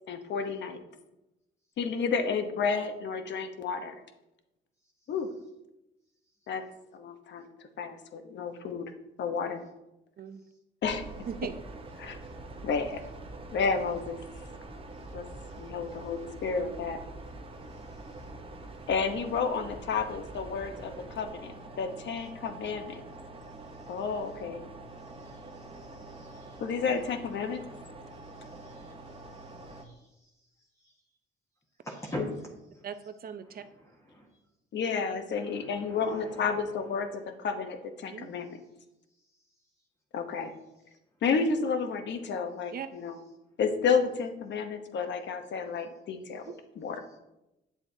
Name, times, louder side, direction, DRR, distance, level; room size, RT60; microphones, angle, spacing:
voice 1, 0.1-0.8 1.8-4.0 5.1-5.3 6.5-6.6 6.9-7.5 7.8-8.9 9.2-9.6 10.8-11.0 12.0-12.2 12.6-13.0 13.5-14.2 15.1-15.2 15.6-17.0 18.9-23.0 23.9-24.6 26.6-27.7 32.2-32.3 34.7-38.6 40.1-40.5 41.2-43.2 43.6-46.4 46.8-47.0, left 5 dB, 65° left, 7 dB, 0.9 m, -31 dB
sound 1, 10.8-29.8, right 2 dB, 25° right, 0.9 m, -45 dB
voice 2, 11.3-11.6 32.8-33.6 38.1-38.3 42.7-42.9 46.4-46.5, right 7 dB, 50° right, 10 dB, 0.6 m, -39 dB
voice 3, 25.7-26.6 27.7-28.9 29.3-30.0 31.8-32.2 34.1-34.3 35.4-36.5, equal, 15° left, -2 dB, 1.5 m, -45 dB
8.8 x 7.3 x 2.7 m, 0.93 s
cardioid pair, 90°, 20 cm